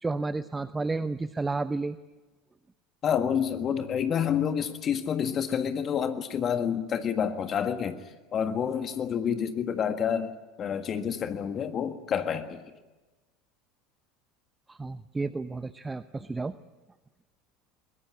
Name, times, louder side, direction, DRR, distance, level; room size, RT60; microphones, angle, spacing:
voice 1, 0.0-2.0 14.7-16.6, right 3 dB, 15° right, 14 dB, 0.8 m, -31 dB
voice 2, 3.0-8.0 8.3-10.3 10.6-12.6, left 8 dB, 35° left, 9 dB, 1.6 m, -28 dB
22.0 x 21.5 x 9.8 m, 1.2 s
figure-of-eight pair, 70°, 0 cm